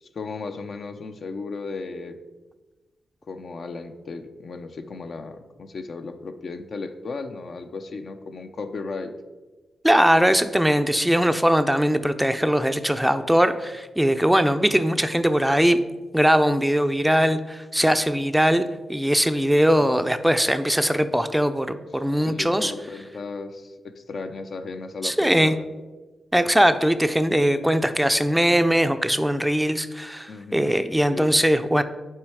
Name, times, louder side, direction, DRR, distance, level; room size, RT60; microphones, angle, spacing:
voice 1, 0.0-2.2 3.3-9.1 20.0-20.1 22.1-25.7 30.3-30.8 31.1-31.3, left 4 dB, 60° left, 7 dB, 0.6 m, -35 dB
voice 2, 9.8-15.8 16.1-18.6 18.9-21.7 21.9-22.7 25.0-25.5 26.3-31.8, equal, 5° right, 10 dB, 0.4 m, -20 dB
7.4 x 4.5 x 4.8 m, 1.2 s
cardioid pair, 70°, 0 cm